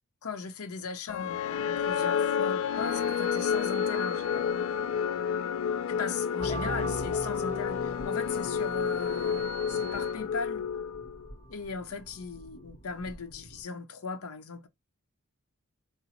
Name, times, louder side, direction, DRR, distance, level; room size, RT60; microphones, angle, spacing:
voice 1, 0.2-4.7 4.9-5.1 5.9-10.7 11.5-14.7, left 4 dB, 85° left, 0.7 m, -38 dB
sound 1, 1.1-11.3, left 7 dB, 65° left, 0.3 m, -30 dB
sound 2, 2.5-5.1 8.0-10.1, right 25 dB, 75° right, 0.4 m, -48 dB
sound 3, 6.4-13.6, equal, 30° left, 0.7 m, -40 dB
4.1 x 2.0 x 4.1 m
head